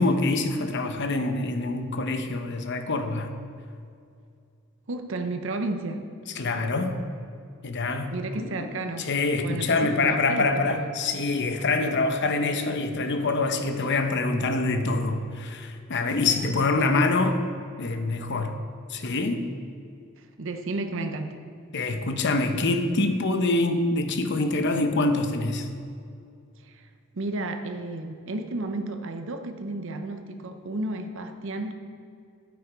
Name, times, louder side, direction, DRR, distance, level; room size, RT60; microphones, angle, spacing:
voice 1, 0.0-3.3 6.3-7.0 7.6-8.1 8.4-8.5 9.0-17.4 17.8-18.6 18.9-19.5 21.7-25.7, left 3 dB, 55° left, 7 dB, 0.8 m, -25 dB
voice 2, 4.9-6.0 8.1-9.1 9.4-10.9 16.6-16.9 20.2-21.3 26.6-26.9 27.1-31.8, right 2 dB, 65° right, 6 dB, 0.7 m, -32 dB
9.9 x 8.4 x 4.6 m, 2.4 s
head